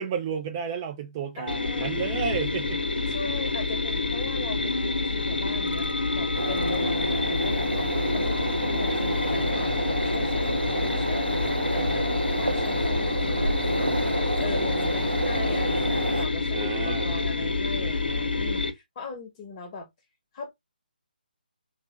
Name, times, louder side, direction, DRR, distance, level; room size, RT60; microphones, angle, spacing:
voice 1, 0.0-3.1 8.8-9.1 16.5-17.1, right 7 dB, 20° right, 0.3 m, -32 dB
voice 2, 1.4-1.9 3.1-5.9 6.1-12.0 12.4-13.9 14.4-19.9 20.3-20.5, left 3 dB, 30° left, 0.9 m, -40 dB
sound 1, 1.5-18.7, left 3 dB, 70° left, 0.8 m, -28 dB
sound 2, 4.5-11.5, left 2 dB, 90° left, 0.4 m, -35 dB
sound 3, 6.3-16.3, right 2 dB, 90° right, 0.7 m, -29 dB
3.2 x 2.1 x 3.2 m
figure-of-eight pair, 145°, 5 cm